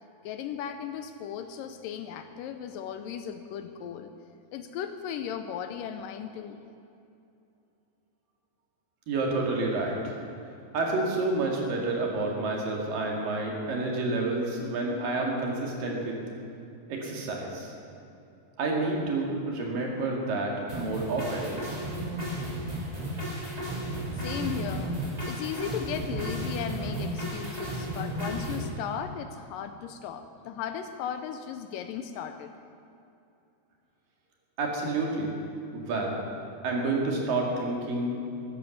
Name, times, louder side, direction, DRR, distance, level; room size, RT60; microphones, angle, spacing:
voice 1, 0.2-4.1 4.5-6.6 24.2-24.9 25.3-32.5, left 8 dB, 80° left, 8 dB, 2.1 m, -36 dB
voice 2, 9.1-10.2 10.7-16.1 16.9-17.7 18.6-21.6 34.6-35.4 35.7-36.2 36.6-38.2, right 2 dB, 70° right, -1 dB, 3.8 m, -29 dB
sound 1, 20.7-28.7, right 1 dB, 10° right, 3.0 m, -33 dB
15.0 x 11.0 x 7.1 m, 2.7 s
omnidirectional pair, 4.2 m